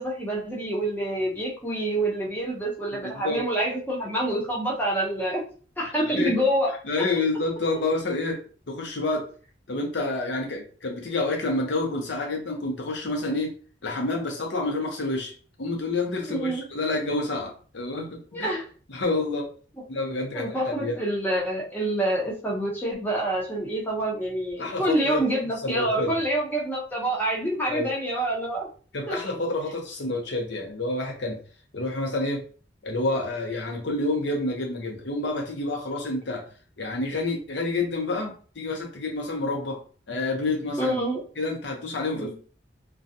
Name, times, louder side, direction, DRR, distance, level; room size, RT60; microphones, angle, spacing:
voice 1, 0.0-5.4 5.8-6.7 16.2-16.6 18.3-18.6 20.3-28.7 29.1-29.2 40.8-41.2 42.1-42.3, right 1 dB, 10° left, -4 dB, 0.8 m, -27 dB
voice 2, 2.9-3.4 6.1-6.4 6.7-8.4 8.7-9.3 9.7-13.5 13.8-15.3 15.6-18.5 18.9-19.5 19.9-21.0 24.6-25.3 25.6-26.1 27.7-27.9 28.9-31.4 31.7-32.4 32.8-36.4 36.8-39.8 40.1-41.0 41.4-42.3, left 2 dB, 80° left, 1 dB, 0.8 m, -28 dB
2.4 x 2.3 x 2.7 m, 0.40 s
head